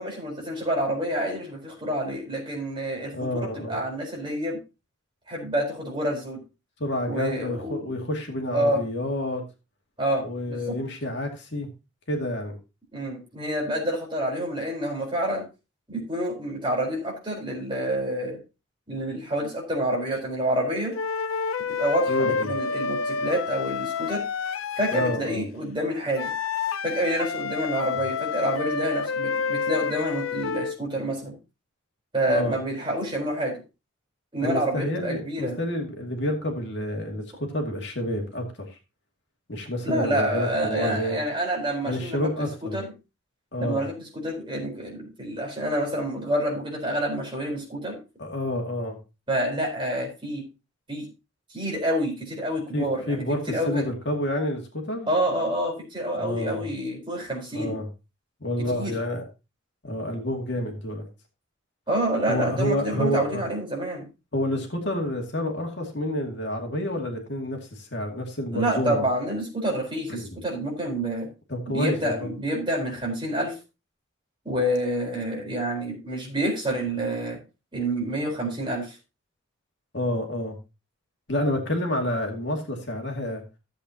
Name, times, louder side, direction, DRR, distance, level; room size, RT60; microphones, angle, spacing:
voice 1, 0.0-4.6 5.3-6.4 7.1-7.9 8.5-8.8 10.0-10.8 12.9-15.4 15.9-18.4 18.9-20.9 21.8-24.2 24.8-26.3 26.8-31.3 32.1-33.6 34.3-35.6 39.8-42.2 42.6-42.9 43.6-48.0 49.3-50.4 50.9-51.1 51.5-53.8 55.1-57.8 58.7-58.9 61.9-64.1 68.5-71.3 71.7-73.5 74.4-77.4 77.7-78.9, right 1 dB, 25° right, 0 dB, 4.2 m, -28 dB
voice 2, 3.1-3.8 6.8-9.4 10.2-11.7 12.1-12.6 22.1-22.5 24.9-25.4 32.3-32.6 34.4-38.8 39.5-41.2 41.8-42.8 43.5-43.8 48.2-49.0 52.7-55.1 56.2-56.7 57.5-57.9 58.4-59.2 59.8-61.1 62.3-63.4 64.3-69.0 70.1-70.4 71.5-72.3 79.9-80.6 81.3-83.4, left 1 dB, 55° left, 2 dB, 2.3 m, -29 dB
sound 1, 20.9-25.2 26.1-30.8, left 5 dB, 80° left, 0.4 m, -29 dB
14.0 x 7.9 x 2.9 m, 0.28 s
head